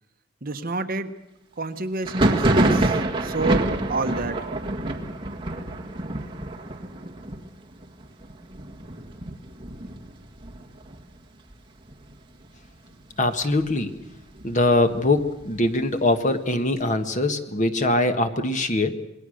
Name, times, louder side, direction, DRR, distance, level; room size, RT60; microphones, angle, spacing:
voice 1, 0.4-1.1 1.6-3.0 3.2-4.4 14.3-14.4, right 2 dB, 45° right, 7 dB, 1.2 m, -28 dB
Thunder, 2.0-11.5 11.8-12.5 12.7-13.7 14.1-15.8, right 1 dB, 25° right, 1.9 m, -27 dB
voice 2, 13.2-13.9 14.4-19.0, left 2 dB, 40° left, 8 dB, 1.5 m, -22 dB
27.0 x 21.0 x 6.5 m, 0.89 s
head